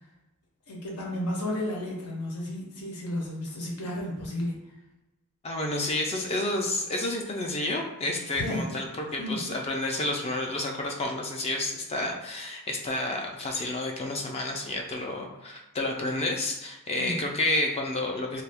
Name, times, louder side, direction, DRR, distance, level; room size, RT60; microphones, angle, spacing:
voice 1, 0.7-4.5 8.4-8.7 9.2-9.4 16.9-17.2, left 1 dB, 90° left, -1 dB, 0.8 m, -32 dB
voice 2, 5.4-18.4, left 2 dB, 25° left, 1 dB, 0.3 m, -30 dB
2.6 x 2.3 x 3.4 m, 1.0 s
head